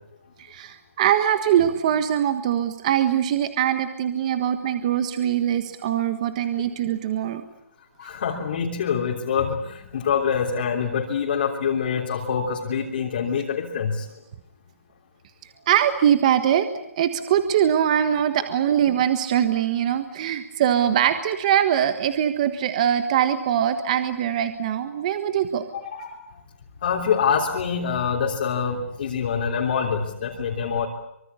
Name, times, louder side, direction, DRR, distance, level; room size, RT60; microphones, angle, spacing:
voice 1, 0.4-7.4 15.7-16.7 17.0-25.6, right 10 dB, 30° right, 10 dB, 1.4 m, -22 dB
voice 2, 8.0-14.1 25.9-26.2 26.8-30.9, left 6 dB, 45° left, -1 dB, 3.6 m, -25 dB
25.0 x 24.5 x 8.4 m, 0.79 s
hypercardioid pair, 170°, 8 cm